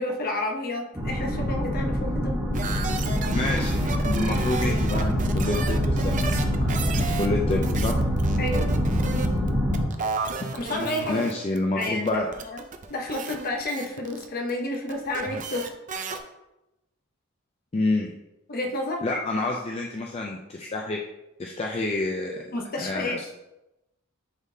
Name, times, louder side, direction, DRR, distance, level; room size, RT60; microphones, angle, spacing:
voice 1, 0.0-2.4 8.4-8.7 10.5-11.2 11.7-12.6 12.9-15.7 18.5-19.0 22.5-23.2, left 1 dB, 45° left, 2 dB, 0.8 m, -30 dB
sound 1, 0.9-9.8, equal, 10° right, 1.7 m, -25 dB
sound 2, 2.5-16.2, right 4 dB, 40° right, 0.5 m, -33 dB
voice 2, 3.3-6.7 7.0-8.0 11.1-12.3 17.7-18.1 19.0-21.0 21.4-22.4 22.8-23.3, left 2 dB, 30° left, 1 dB, 0.4 m, -28 dB
9.8 x 3.6 x 2.7 m, 0.94 s
head